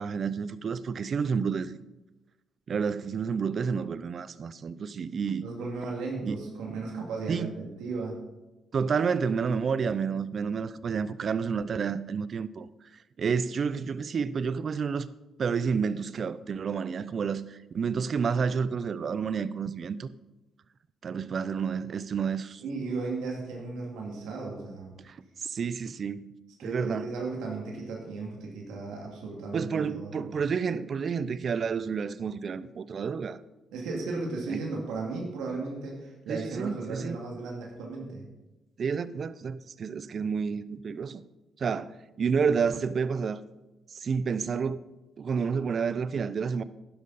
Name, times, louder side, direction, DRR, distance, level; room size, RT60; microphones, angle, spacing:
voice 1, 0.0-1.7 2.7-5.4 6.2-6.4 7.3-7.5 8.7-12.7 13.2-15.1 15.4-20.1 21.0-22.6 25.0-26.3 26.6-27.1 29.5-33.4 34.5-34.6 36.3-37.2 38.8-41.2 41.6-41.9 42.2-43.4 43.9-44.8 45.2-46.6, right 6 dB, 50° right, 0.6 m, -30 dB
voice 2, 5.4-8.2 22.6-25.0 26.6-30.2 33.7-38.2, right 3 dB, 90° right, 2.3 m, -35 dB
11.5 x 11.0 x 4.1 m
cardioid pair, 90°, 0 cm